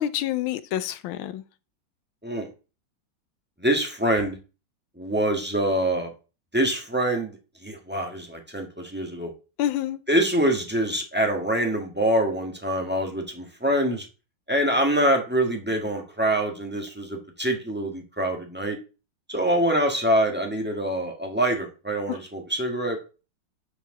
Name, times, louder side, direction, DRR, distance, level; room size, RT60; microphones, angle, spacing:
voice 1, 0.0-1.4 9.6-10.0 22.1-22.2, left 12 dB, 90° left, 1.5 m, -27 dB
voice 2, 3.6-4.4 5.0-6.1 6.5-7.4 7.6-9.3 10.1-14.1 14.5-18.8 19.3-23.2, right 1 dB, 5° right, 1.3 m, -25 dB
6.8 x 4.5 x 6.4 m
omnidirectional pair, 2.2 m